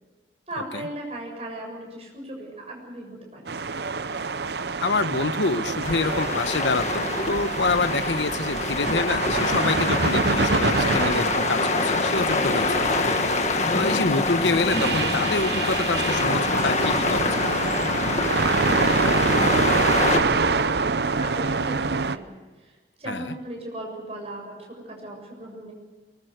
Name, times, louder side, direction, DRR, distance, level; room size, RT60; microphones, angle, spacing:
voice 1, 0.5-3.5 18.0-22.3 22.6-25.7, right 1 dB, 35° right, 1 dB, 7.1 m, -37 dB
sound 1, 3.5-22.2, right 4 dB, 70° right, 0.7 m, -26 dB
voice 2, 4.8-12.8 13.7-17.5 23.1-23.3, left 3 dB, 90° left, 12 dB, 1.1 m, -27 dB
sound 2, 5.8-20.2, left 3 dB, 40° left, 1.6 m, -25 dB
sound 3, 8.8-17.8, left 2 dB, 70° left, 2.2 m, -41 dB
23.5 x 20.5 x 8.0 m, 1.3 s
head